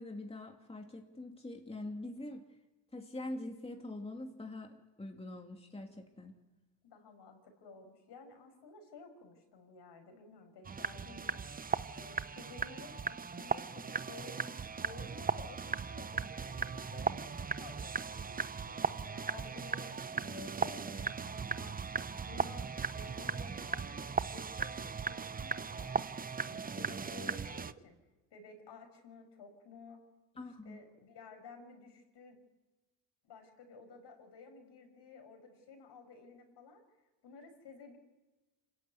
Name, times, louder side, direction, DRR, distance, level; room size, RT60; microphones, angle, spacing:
voice 1, 0.0-2.4 2.9-6.3 30.4-30.8, left 2 dB, 10° left, 2 dB, 2.7 m, -44 dB
voice 2, 6.8-11.4 11.9-21.9 22.2-26.0 26.4-28.0 28.3-30.0 30.6-32.4 33.2-36.8 37.2-38.0, left 4 dB, 60° left, 5 dB, 6.1 m, -53 dB
sound 1, 10.6-27.7, right 5 dB, 20° right, 0.7 m, -37 dB
26.0 x 15.0 x 9.7 m, 1.2 s
supercardioid pair, 80°, 47 cm